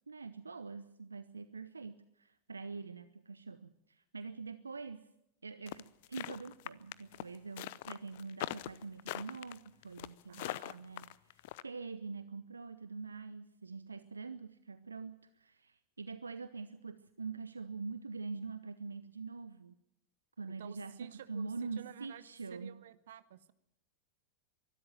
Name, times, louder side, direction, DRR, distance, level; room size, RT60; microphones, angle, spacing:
voice 1, 0.1-5.0 5.4-19.7 20.4-22.8, right 4 dB, 75° right, 13 dB, 0.8 m, -45 dB
sound 1, 5.7-11.6, left 17 dB, 50° left, 0.7 m, -42 dB
voice 2, 10.3-10.8 20.6-23.5, right 10 dB, 60° right, 15 dB, 1.1 m, -52 dB
23.5 x 12.5 x 9.1 m, 0.82 s
figure-of-eight pair, 90°, 0 cm